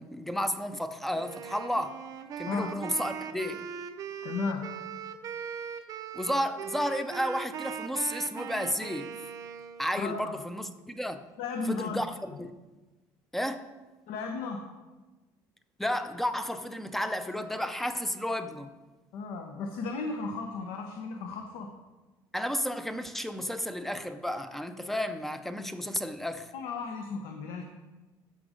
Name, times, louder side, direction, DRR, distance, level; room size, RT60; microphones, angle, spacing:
voice 1, 0.0-2.0 2.4-3.6 6.1-9.1 9.8-11.2 11.7-12.5 13.3-13.7 15.8-18.7 22.3-26.5, equal, 5° left, 10 dB, 0.4 m, -32 dB
Wind instrument woodwind instrument, 1.1-9.9, right 8 dB, 40° right, 0.6 m, -40 dB
voice 2, 4.2-4.7 10.0-10.3 11.4-12.0 14.1-14.7 19.1-21.7 26.5-27.6, left 4 dB, 80° left, 4 dB, 1.0 m, -34 dB
13.5 x 5.1 x 5.1 m, 1.2 s
cardioid pair, 165°, 9 cm